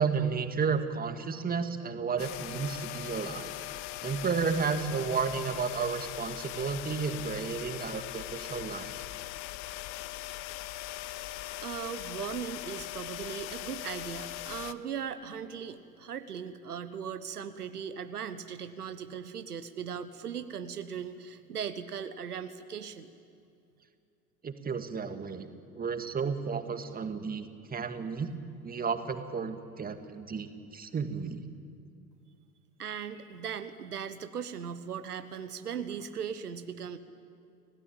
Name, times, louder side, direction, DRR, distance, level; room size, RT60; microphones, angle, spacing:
voice 1, 0.0-3.5 4.0-8.9 24.4-25.5 25.8-28.3 28.6-31.5, right 5 dB, 20° right, 8 dB, 2.1 m, -32 dB
sound 1, 2.2-14.7, left 16 dB, 50° left, 1.1 m, -40 dB
voice 2, 11.6-23.1 32.8-37.0, right 7 dB, 75° right, 10 dB, 1.3 m, -38 dB
30.0 x 17.0 x 8.8 m, 2.5 s
figure-of-eight pair, 80°, 46 cm